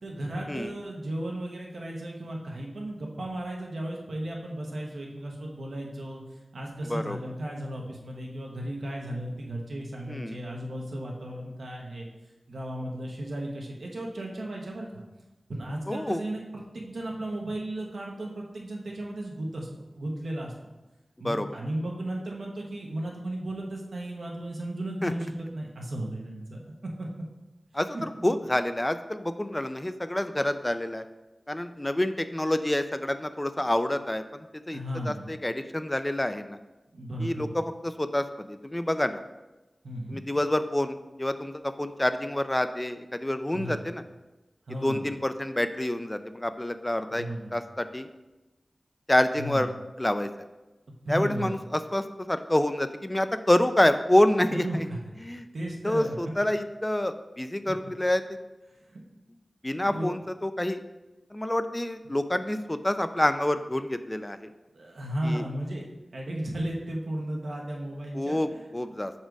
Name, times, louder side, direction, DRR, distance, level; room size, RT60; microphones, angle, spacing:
voice 1, 0.0-6.2 6.5-12.1 12.5-15.0 15.5-20.7 21.2-26.6 27.0-27.1 27.9-28.4 34.7-35.3 36.9-37.6 39.8-40.2 43.5-43.8 44.7-45.1 47.1-47.6 49.3-49.7 51.0-51.5 54.5-55.2 55.5-56.1 58.9-59.0 59.8-60.1 64.7-65.8 66.1-68.4, right 1 dB, 90° right, -1 dB, 1.0 m, -35 dB
voice 2, 10.1-10.4 15.9-16.2 21.2-21.5 25.0-25.1 27.7-31.0 31.5-34.2 34.7-34.8 35.0-36.6 37.2-39.2 40.1-44.0 44.8-47.3 47.5-48.1 49.1-50.3 51.1-54.9 55.2-55.5 55.8-58.2 59.6-60.9 61.3-64.5 65.2-65.4 68.1-69.1, left 1 dB, 20° left, 10 dB, 0.3 m, -27 dB
5.1 x 4.3 x 4.6 m, 1.1 s
wide cardioid pair, 60°, 0 cm